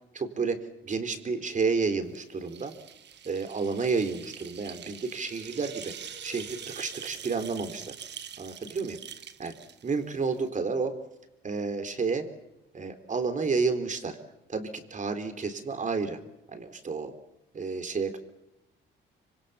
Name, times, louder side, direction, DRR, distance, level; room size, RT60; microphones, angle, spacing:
voice 1, 0.1-0.6 0.8-2.7 3.2-7.9 8.4-9.0 9.4-9.5 9.8-10.9 11.4-12.3 12.7-14.2 14.5-16.2 16.5-17.1 17.5-18.2, right 4 dB, 40° right, 8 dB, 3.7 m, -30 dB
sound 1, 2.1-10.5, right 9 dB, 60° right, 1.3 m, -45 dB
sound 2, 4.8-8.8, right 1 dB, 80° right, 7.0 m, -54 dB
26.0 x 25.5 x 6.9 m, 0.93 s
cardioid pair, 90°, 20 cm